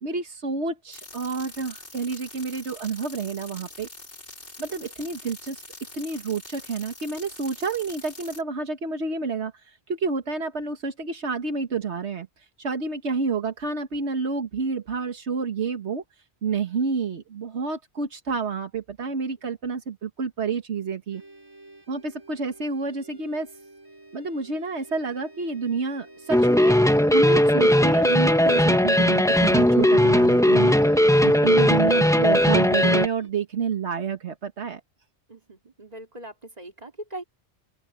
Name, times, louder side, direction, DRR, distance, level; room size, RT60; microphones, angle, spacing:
voice 1, 0.0-3.9 4.6-5.6 5.9-16.0 16.4-21.2 21.9-23.5 24.1-30.7 31.2-34.8, right 4 dB, 80° right, 1.7 m, -29 dB
sound 1, 0.9-8.4, left 2 dB, 85° left, 4.5 m, -44 dB
sound 2, 21.1-33.3, right 2 dB, 20° right, 5.6 m, -49 dB
sound 3, 26.3-33.1, left 1 dB, 5° left, 0.5 m, -18 dB
voice 2, 35.3-37.2, right 1 dB, 35° right, 3.2 m, -41 dB
open air
omnidirectional pair, 1.1 m